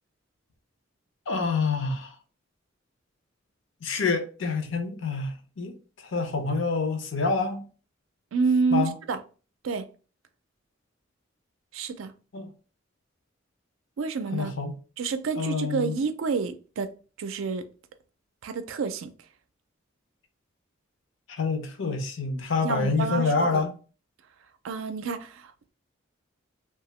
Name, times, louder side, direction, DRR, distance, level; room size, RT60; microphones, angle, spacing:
voice 1, 1.3-2.1 3.8-7.7 8.7-8.9 12.3-12.5 14.3-14.7 15.4-15.9 21.3-23.7, left 4 dB, 70° left, 0.6 m, -27 dB
voice 2, 8.3-9.2 9.6-9.9 11.7-12.1 14.0-14.5 15.0-16.9 17.2-17.6 18.4-19.1 22.6-23.6 24.6-25.7, right 5 dB, 80° right, 0.4 m, -28 dB
2.8 x 2.3 x 3.0 m
head